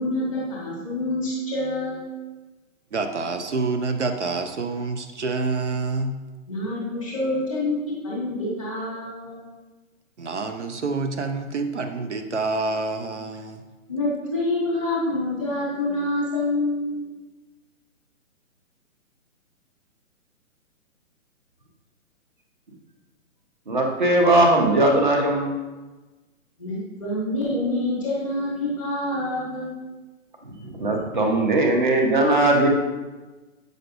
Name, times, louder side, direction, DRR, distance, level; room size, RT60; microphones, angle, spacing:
voice 1, 0.0-2.1 6.5-9.4 13.9-17.0 26.6-29.7, left 1 dB, 5° right, -6 dB, 0.9 m, -27 dB
voice 2, 2.9-6.1 10.2-13.6, right 3 dB, 55° right, 7 dB, 0.6 m, -27 dB
voice 3, 23.7-25.5 30.6-32.7, right 1 dB, 35° right, 1 dB, 0.9 m, -19 dB
7.9 x 6.4 x 2.6 m, 1.2 s
hypercardioid pair, 180°, 42 cm